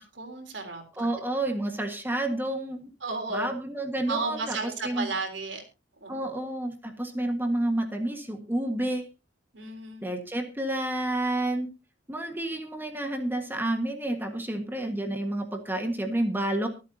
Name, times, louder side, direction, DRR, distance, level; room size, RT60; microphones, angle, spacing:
voice 1, 0.2-1.1 3.0-3.5 4.1-5.6 6.0-6.3 9.5-10.1, right 3 dB, 75° right, 4 dB, 3.6 m, -33 dB
voice 2, 1.0-2.9 3.3-5.1 6.1-9.1 10.0-11.7 12.1-16.7, right 1 dB, 10° right, 4 dB, 1.6 m, -30 dB
24.5 x 8.3 x 2.8 m, 0.30 s
head